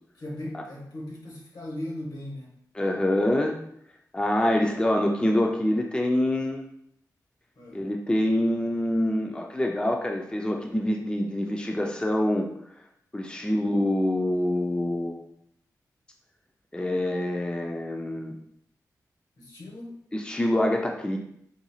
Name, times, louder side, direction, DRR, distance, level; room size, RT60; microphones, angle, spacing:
voice 1, 0.2-2.5 7.6-7.8 19.4-20.0, left 1 dB, 75° left, -3 dB, 1.2 m, -38 dB
voice 2, 2.8-3.6 4.1-6.6 7.7-12.5 13.1-15.2 16.7-18.4 20.1-21.2, left 1 dB, 15° left, 1 dB, 0.4 m, -25 dB
3.8 x 2.8 x 2.3 m, 0.72 s
cardioid pair, 50°, 7 cm